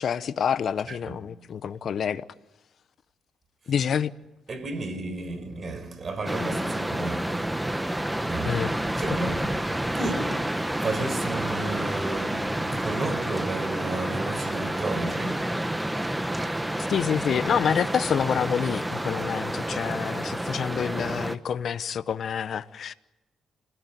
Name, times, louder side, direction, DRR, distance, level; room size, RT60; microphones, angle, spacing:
voice 1, 0.0-2.2 3.7-4.1 8.4-8.7 9.1-9.2 16.9-22.9, left 8 dB, 60° left, 0.9 m, -27 dB
voice 2, 4.5-7.5 8.3-8.6 9.0-9.3 9.7-10.4 10.8-15.4 16.4-16.6, right 3 dB, 40° right, 4.6 m, -33 dB
sound 1, 6.2-21.3, right 1 dB, 10° right, 1.1 m, -29 dB
28.5 x 17.5 x 9.3 m
cardioid pair, 90°, 0 cm